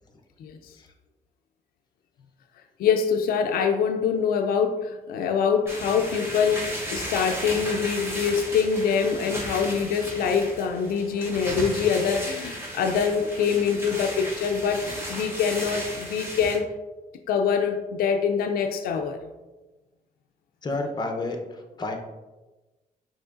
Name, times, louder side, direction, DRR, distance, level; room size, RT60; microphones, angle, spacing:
voice 1, 2.8-16.7 17.3-19.3, left 6 dB, 85° left, 5 dB, 0.4 m, -24 dB
sound 1, 5.7-16.6, equal, 15° right, 1.3 m, -35 dB
voice 2, 20.6-22.0, left 2 dB, 30° left, 4 dB, 0.7 m, -30 dB
6.2 x 3.0 x 2.5 m, 1.1 s
cardioid pair, 100°, 15 cm